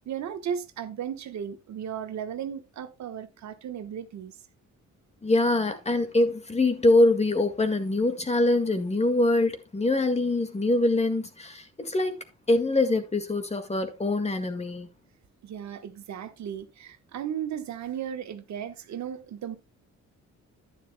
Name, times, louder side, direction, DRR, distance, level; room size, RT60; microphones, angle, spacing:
voice 1, 0.0-4.4 15.4-19.6, right 8 dB, 65° right, 1.2 m, -35 dB
voice 2, 5.2-14.9, left 2 dB, 20° left, 1.8 m, -24 dB
10.5 x 10.0 x 2.2 m
cardioid pair, 90°, 30 cm